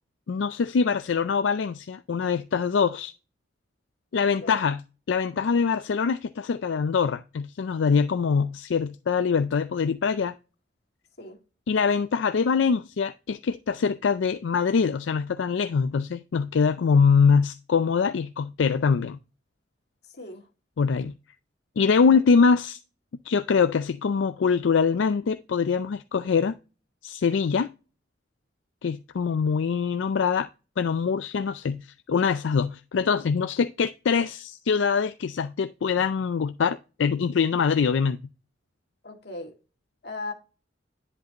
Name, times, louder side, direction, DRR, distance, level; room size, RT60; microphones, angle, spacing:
voice 1, 0.3-3.1 4.1-4.8 5.1-10.3 11.7-19.2 20.8-21.1 21.8-22.8 23.3-26.6 27.0-27.7 28.8-30.5 30.8-38.2, left 5 dB, 85° left, 0.4 m, -23 dB
voice 2, 20.1-20.5 39.0-39.5 40.0-40.3, left 2 dB, 60° left, 2.0 m, -37 dB
10.5 x 5.4 x 2.8 m
head